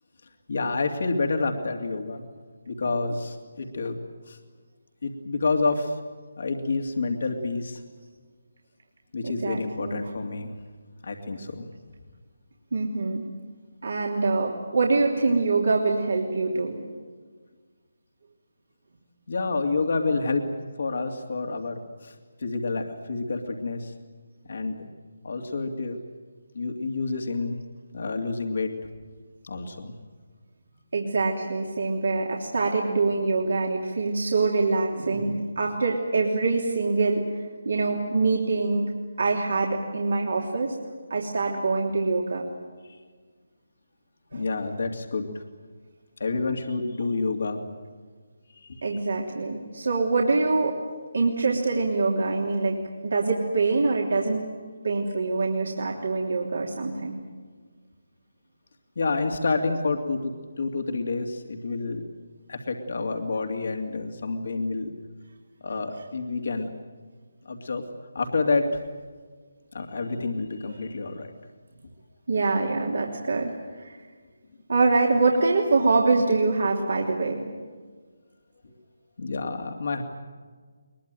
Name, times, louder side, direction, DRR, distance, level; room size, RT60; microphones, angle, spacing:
voice 1, 0.5-2.2 2.7-4.0 4.3-4.4 5.0-6.0 6.4-7.8 9.1-10.5 11.0-11.7 19.3-20.4 20.8-22.1 22.4-23.9 24.5-24.9 25.2-26.0 26.5-27.6 27.9-28.7 29.4-29.9 42.8-43.0 44.3-45.4 46.2-47.6 48.6-48.8 59.0-62.0 62.5-64.9 65.6-66.7 67.4-67.8 68.1-68.8 69.7-71.3 78.6-78.7 79.2-80.0, left 3 dB, 60° left, 4 dB, 2.7 m, -28 dB
voice 2, 9.2-10.1 12.7-13.2 13.8-16.8 30.9-37.2 37.6-38.9 39.2-40.8 41.1-42.5 44.3-44.4 48.8-50.8 51.1-52.8 53.0-54.5 54.8-57.2 72.3-74.0 74.7-77.4, right 3 dB, 65° right, -1 dB, 3.2 m, -24 dB
22.0 x 22.0 x 9.2 m, 1.5 s
figure-of-eight pair, 150°, 0 cm